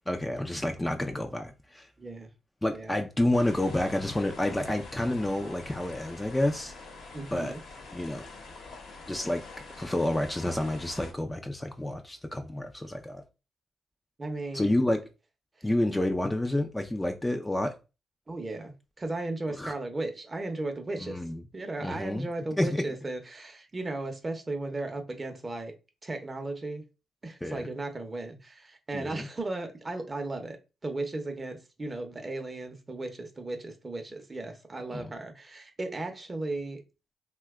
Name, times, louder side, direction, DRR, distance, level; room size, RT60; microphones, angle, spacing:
voice 1, 0.1-1.9 2.6-6.7 7.3-7.5 7.9-8.3 9.1-9.4 9.8-13.2 14.5-15.0 15.6-17.7 19.6-19.7 21.0-21.4 21.8-22.3 22.6-22.9 27.4-27.7 28.9-29.3 34.9-35.1, left 1 dB, 15° left, 0.4 m, -29 dB
voice 2, 2.0-2.3 2.7-2.9 7.1-7.6 14.2-14.7 18.3-21.2 21.5-25.7 26.0-26.8 27.2-30.6 30.8-36.8, right 2 dB, 30° right, 0.7 m, -36 dB
sound 1, 3.3-11.1, left 3 dB, 80° left, 0.9 m, -46 dB
2.8 x 2.2 x 3.4 m
cardioid pair, 80°, 0 cm